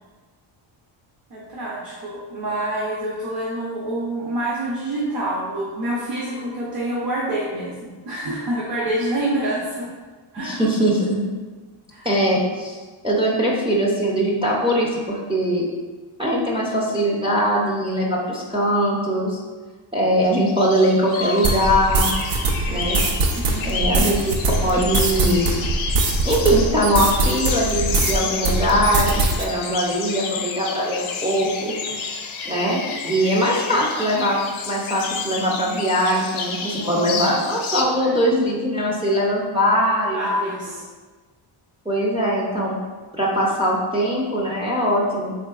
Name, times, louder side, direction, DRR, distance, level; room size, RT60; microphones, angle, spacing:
voice 1, 1.3-9.9 10.3-10.6 11.9-12.1 23.3-24.1 31.7-32.0 33.7-33.8 36.6-37.1 38.0-38.1 40.1-40.8, right 1 dB, 45° right, -5 dB, 0.7 m, -27 dB
voice 2, 10.4-11.2 12.0-12.8 13.0-15.7 16.2-19.4 19.9-22.1 22.7-23.0 23.6-24.3 24.6-25.5 26.2-31.7 32.5-34.4 34.7-40.2 41.9-42.8 43.2-45.4, equal, 15° right, -5 dB, 0.3 m, -21 dB
sound 1, 20.3-37.8, left 5 dB, 75° left, 0.5 m, -31 dB
Mallet percussion, 21.2-23.8, right 5 dB, 70° right, 0.9 m, -36 dB
sound 2, 21.4-28.2 28.4-29.4, right 2 dB, 90° right, 0.6 m, -22 dB
3.5 x 3.3 x 2.3 m, 1.4 s
cardioid pair, 135°, 49 cm